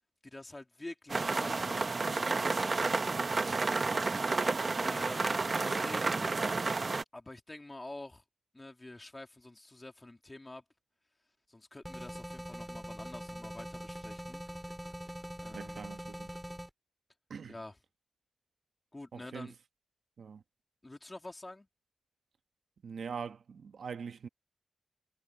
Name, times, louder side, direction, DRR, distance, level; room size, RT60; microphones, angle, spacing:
voice 1, 0.2-3.2 4.5-6.2 7.1-8.2 8.5-10.6 11.5-14.4 15.4-16.0 17.5-17.8 18.9-19.6 20.8-21.7, left 2 dB, 20° left, 2.9 m, -48 dB
sound 1, 1.1-7.0, right 3 dB, 35° right, 0.9 m, -31 dB
sound 2, 11.8-16.7, equal, ahead, 2.9 m, -43 dB
voice 2, 15.5-16.3 17.3-17.5 19.1-19.5 20.2-20.4 22.8-24.3, right 6 dB, 75° right, 1.2 m, -42 dB
wide cardioid pair, 120°, 0 cm